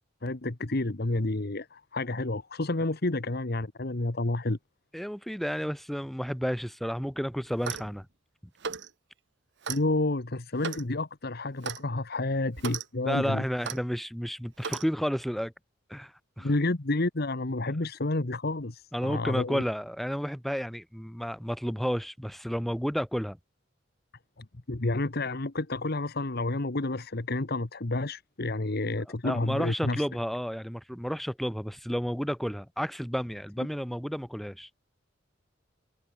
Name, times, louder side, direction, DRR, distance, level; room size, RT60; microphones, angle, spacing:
voice 1, 0.2-4.6 9.7-13.4 16.4-19.6 24.4-30.0, left 2 dB, 55° left, 1.3 m, -30 dB
voice 2, 4.9-8.1 13.0-15.5 15.9-16.1 16.4-16.5 18.9-23.4 29.2-34.7, equal, ahead, 6.7 m, -31 dB
Clock, 7.5-7.9 8.6-8.9 9.6-9.8 10.6-10.9 11.6-11.8 12.6-12.8 13.6-13.8 14.6-14.9, right 6 dB, 60° right, 1.1 m, -35 dB
head